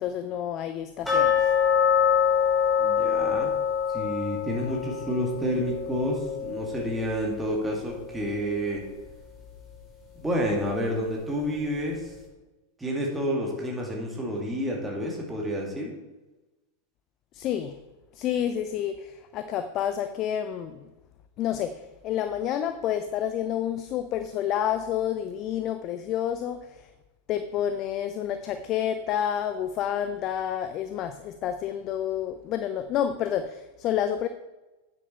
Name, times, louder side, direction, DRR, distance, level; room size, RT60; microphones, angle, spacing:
voice 1, 0.0-1.5 17.3-17.7 18.2-20.8 21.4-26.6 27.3-34.3, left 10 dB, 35° left, 10 dB, 0.5 m, -29 dB
sound 1, 1.1-7.9 8.2-8.3 8.8-8.9 9.4-9.5, left 7 dB, 5° left, 3.2 m, -25 dB
voice 2, 2.8-3.5 3.9-8.8 10.2-12.0 12.8-15.9, equal, 10° right, -1 dB, 2.3 m, -29 dB
9.1 x 7.6 x 4.4 m, 1.1 s
figure-of-eight pair, 90°, 0 cm